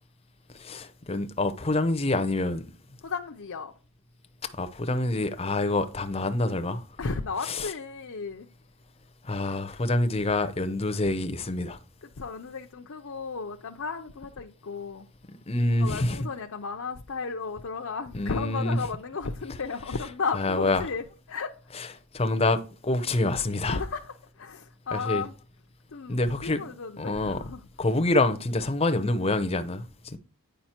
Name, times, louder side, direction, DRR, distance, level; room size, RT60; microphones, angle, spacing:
voice 1, 0.5-2.6 4.4-6.8 7.4-7.7 9.2-11.8 15.3-16.3 18.1-18.8 20.3-20.9 21.8-21.9 22.1-23.8 24.9-25.2 26.1-26.6 27.0-27.4 27.8-30.2, left 2 dB, 25° left, 0.7 m, -26 dB
voice 2, 3.0-3.7 7.0-8.5 12.0-15.1 15.7-21.6 23.7-25.4 25.9-27.6, left 4 dB, 65° left, 0.6 m, -34 dB
9.2 x 5.2 x 4.4 m
head